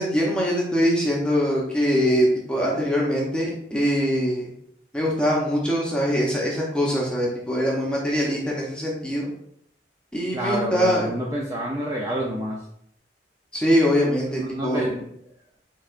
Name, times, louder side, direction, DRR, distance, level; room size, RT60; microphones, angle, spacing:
voice 1, 0.0-4.5 4.9-9.3 10.1-11.1 13.5-14.8, equal, 5° left, -4 dB, 0.8 m, -23 dB
voice 2, 10.3-12.6 14.2-15.0, right 1 dB, 20° right, -4 dB, 0.5 m, -28 dB
4.7 x 4.3 x 2.5 m, 0.70 s
head